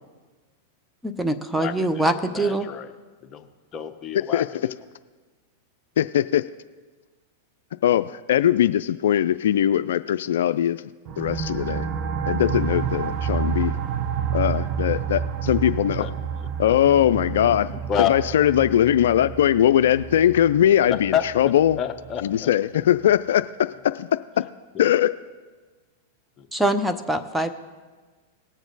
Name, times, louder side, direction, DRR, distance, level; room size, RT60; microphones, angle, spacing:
voice 1, 1.0-2.7 26.5-27.5, right 1 dB, 5° right, 9 dB, 0.7 m, -24 dB
voice 2, 1.6-2.1 2.3-2.9 3.2-3.5 3.7-4.7 16.0-16.7 17.9-18.1 20.8-22.5 26.4-26.5, left 9 dB, 30° left, 6 dB, 0.9 m, -29 dB
voice 3, 6.0-6.4 7.8-10.8 11.2-11.9 12.3-13.7 14.3-16.1 16.6-17.7 18.1-21.8 22.2-23.7 24.0-24.1 24.4-24.5 24.8-25.1, left 11 dB, 75° left, 12 dB, 0.3 m, -20 dB
sound 1, 11.1-22.4, right 7 dB, 40° right, 0.7 m, -29 dB
19.0 x 7.2 x 4.0 m, 1.4 s
hypercardioid pair, 115°, 0 cm